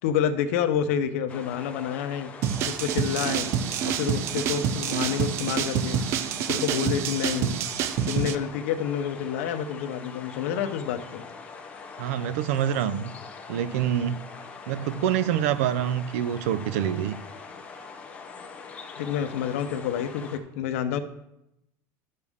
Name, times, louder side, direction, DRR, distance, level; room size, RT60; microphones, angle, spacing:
voice 1, 0.0-2.3 2.7-3.5 3.8-6.0 6.5-7.6 8.0-11.2 19.0-21.0, left 8 dB, 85° left, 0.8 m, -28 dB
sound 1, 1.3-20.4, left 5 dB, 20° left, 0.7 m, -43 dB
sound 2, 2.4-8.4, right 8 dB, 35° right, 0.5 m, -27 dB
voice 2, 12.0-13.1 13.5-14.2 14.7-17.2, right 10 dB, 85° right, 0.6 m, -26 dB
12.0 x 6.6 x 3.6 m
cardioid pair, 180°, 7 cm